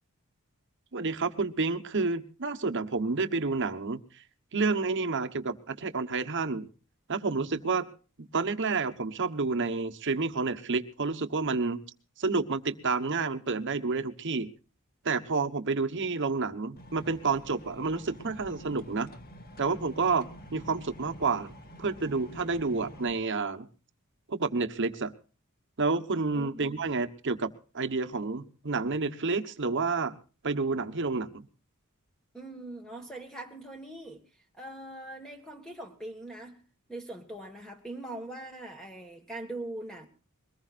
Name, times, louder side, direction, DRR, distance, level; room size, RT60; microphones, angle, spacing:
voice 1, 0.9-4.0 4.5-6.7 7.1-7.9 8.2-11.8 12.2-14.5 15.0-19.1 19.6-21.5 21.8-23.7 24.3-25.1 25.8-30.2 30.4-31.5, right 4 dB, 55° right, 1.2 m, -29 dB
sound 1, 16.8-23.1, equal, 45° left, 2.0 m, -48 dB
voice 2, 26.3-26.8 32.3-34.2 34.5-36.6 36.9-40.1, right 1 dB, 5° left, 1.7 m, -41 dB
22.5 x 19.0 x 2.5 m
head